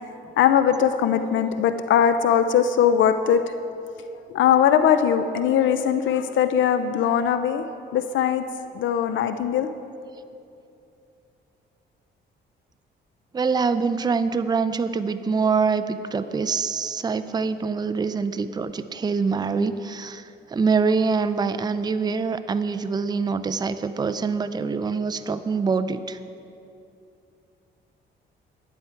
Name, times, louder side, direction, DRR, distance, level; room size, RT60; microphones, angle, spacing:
voice 1, 0.4-3.5 4.3-7.7 7.9-8.4 8.7-9.7, left 8 dB, 75° left, 10 dB, 0.6 m, -20 dB
voice 2, 13.3-26.2, right 5 dB, 20° right, 11 dB, 0.4 m, -25 dB
11.5 x 9.4 x 4.5 m, 2.6 s
cardioid pair, 90°, 20 cm